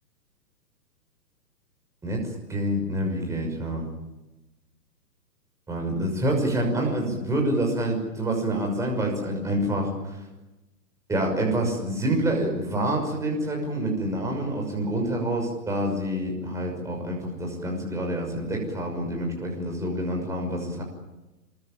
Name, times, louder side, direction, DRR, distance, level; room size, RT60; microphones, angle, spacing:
voice 1, 2.0-3.8 5.7-10.2 11.1-20.8, right 1 dB, 5° right, 0 dB, 6.2 m, -27 dB
27.0 x 24.0 x 8.9 m, 1.0 s
hypercardioid pair, 150°, 50 cm